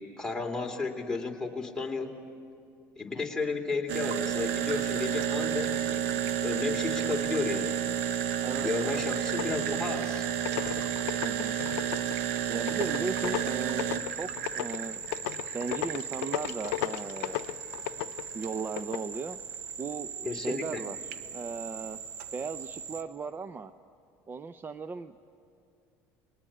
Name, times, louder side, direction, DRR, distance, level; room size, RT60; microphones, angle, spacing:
voice 1, 0.0-2.1 3.0-7.8 8.6-10.3 20.2-20.8, left 4 dB, 10° left, 0 dB, 3.0 m, -33 dB
sound 1, 3.9-23.0, right 9 dB, 90° right, 1.3 m, -33 dB
voice 2, 8.4-9.0 11.2-11.6 12.5-15.0 15.5-17.4 18.3-19.4 19.8-21.0 21.3-22.0 22.3-23.7 24.3-25.1, right 5 dB, 25° right, 11 dB, 0.6 m, -37 dB
sound 2, 9.3-9.9 10.3-19.1, left 15 dB, 90° left, 0.5 m, -36 dB
29.5 x 20.5 x 8.7 m, 2.5 s
supercardioid pair, 100°, 8 cm